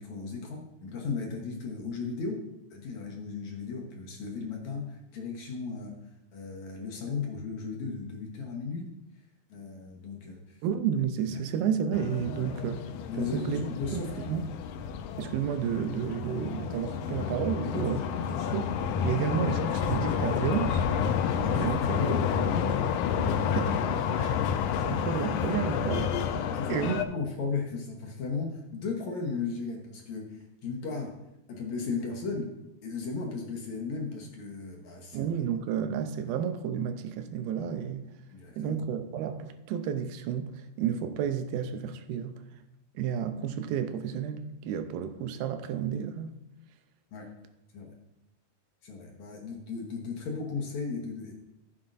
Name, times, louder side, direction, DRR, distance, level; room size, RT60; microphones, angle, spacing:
voice 1, 0.0-2.4 2.7-6.0 6.3-8.9 9.5-10.6 12.4-12.6 13.1-14.3 17.6-18.5 21.5-22.8 26.5-31.1 31.5-32.5 32.8-35.3 38.3-38.8 47.1-47.3 47.7-47.9 48.8-51.3, left 4 dB, 65° left, 2.1 m, -36 dB
voice 2, 10.6-12.8 13.2-13.7 13.9-14.5 15.2-18.0 18.5-18.7 19.0-20.8 21.4-22.0 23.1-23.8 24.1-24.4 24.9-26.2 26.7-27.1 35.1-38.1 38.6-42.4 43.0-46.4, right 8 dB, 85° right, 2.5 m, -31 dB
sound 1, 11.9-27.0, left 7 dB, 90° left, 1.8 m, -30 dB
15.0 x 7.4 x 2.6 m
omnidirectional pair, 4.3 m